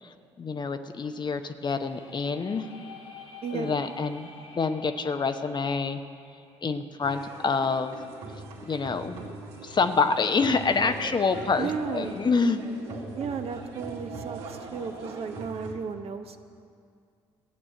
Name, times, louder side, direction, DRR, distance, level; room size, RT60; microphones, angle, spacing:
voice 1, 0.0-2.7 3.5-6.0 6.6-7.9 8.7-9.2 9.6-12.7, left 4 dB, 30° left, 8 dB, 0.9 m, -27 dB
sound 1, 1.7-7.5, left 4 dB, 80° left, 1.5 m, -49 dB
voice 2, 3.4-3.8 11.6-12.2 13.1-16.4, right 5 dB, 45° right, 7 dB, 1.0 m, -34 dB
sound 2, 7.0-15.7, right 3 dB, 70° right, 2.0 m, -41 dB
16.0 x 8.5 x 7.8 m, 2.3 s
figure-of-eight pair, 50°, 14 cm